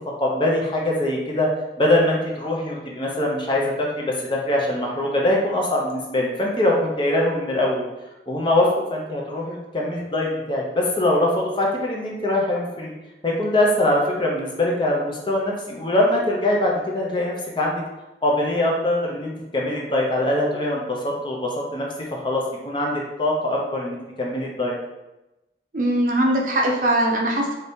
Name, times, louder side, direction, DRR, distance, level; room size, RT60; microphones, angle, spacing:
voice 1, 0.2-1.5 1.8-7.8 8.3-12.9 13.2-17.8 18.2-24.8, left 1 dB, 25° left, -2 dB, 0.5 m, -23 dB
voice 2, 25.7-27.6, right 1 dB, 50° right, 0 dB, 0.5 m, -21 dB
2.7 x 2.6 x 3.4 m, 1.0 s
head